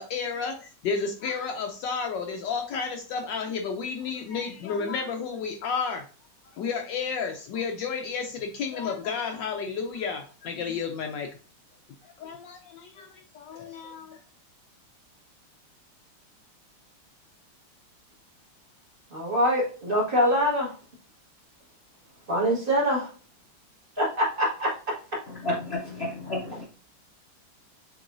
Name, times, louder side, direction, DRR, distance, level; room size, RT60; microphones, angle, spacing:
voice 1, 0.0-6.0 6.5-11.3 12.0-14.2, left 5 dB, 75° left, 4 dB, 1.1 m, -32 dB
voice 2, 19.1-20.7 22.3-23.1 24.0-24.7, equal, 25° right, -6 dB, 1.7 m, -24 dB
voice 3, 25.3-26.6, left 1 dB, 50° left, -1 dB, 0.7 m, -32 dB
6.7 x 3.0 x 2.5 m, 0.38 s
omnidirectional pair, 2.3 m